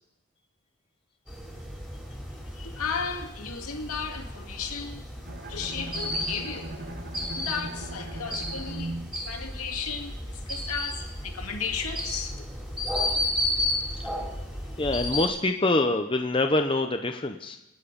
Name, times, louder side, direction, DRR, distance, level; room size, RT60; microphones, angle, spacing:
sound 1, 1.3-15.3, left 1 dB, 5° right, 2.9 m, -33 dB
voice 1, 2.5-5.0 5.5-6.7 7.2-9.0 9.2-12.5, left 6 dB, 80° left, 2.0 m, -34 dB
Bowed string instrument, 5.3-10.3, right 2 dB, 45° right, 1.1 m, -39 dB
voice 2, 14.8-17.6, left 2 dB, 25° left, 0.7 m, -25 dB
25.5 x 9.1 x 5.2 m
head